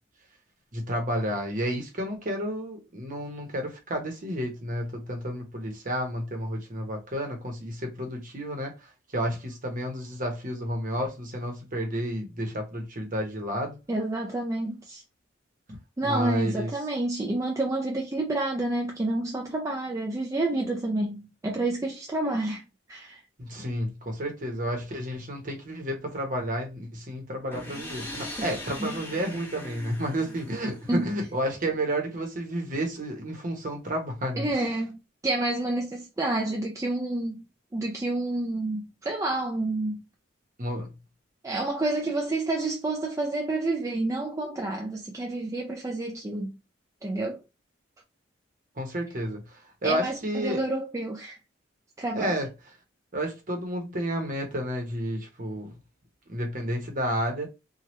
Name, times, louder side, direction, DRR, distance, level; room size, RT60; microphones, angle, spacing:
voice 1, 0.7-8.7 9.1-13.8 16.0-16.7 23.4-34.6 40.6-40.9 48.8-50.6 52.2-52.5 53.1-55.8 56.3-57.5, equal, 45° right, 0.9 m, -31 dB
voice 2, 13.9-15.0 16.0-22.6 22.9-23.2 28.8-28.9 30.9-31.1 34.3-37.4 37.7-40.0 41.4-46.6 47.0-47.4 49.8-51.4 52.0-52.4, right 2 dB, 15° right, 0.4 m, -29 dB
sound 1, 27.5-31.3, left 1 dB, 10° left, 0.9 m, -40 dB
2.9 x 2.3 x 3.1 m
head